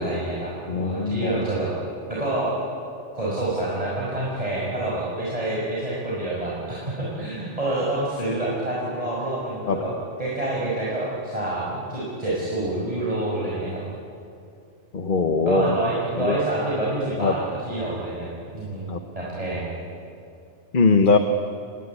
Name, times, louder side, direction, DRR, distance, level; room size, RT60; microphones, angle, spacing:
voice 1, 0.0-1.7 2.1-2.5 3.1-9.9 10.2-13.8 15.4-18.3 18.5-19.8, right 1 dB, 30° right, -6 dB, 5.7 m, -27 dB
voice 2, 0.7-1.4 9.7-9.8 14.9-15.7 16.2-16.4 17.2-17.3 18.9-19.0 20.7-21.2, left 4 dB, 50° left, 6 dB, 1.3 m, -20 dB
27.5 x 22.0 x 9.9 m, 2.6 s
omnidirectional pair, 1.2 m